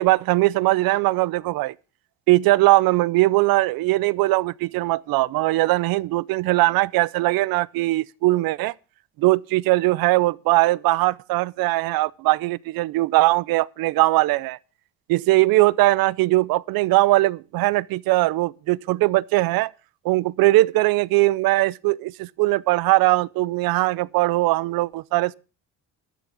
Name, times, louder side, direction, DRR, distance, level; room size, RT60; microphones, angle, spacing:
voice 1, 0.0-1.7 2.3-8.7 9.2-14.6 15.1-19.7 20.0-25.3, right 19 dB, 80° right, 0.5 m, -20 dB
12.0 x 7.1 x 6.0 m
cardioid pair, 145°, 35 cm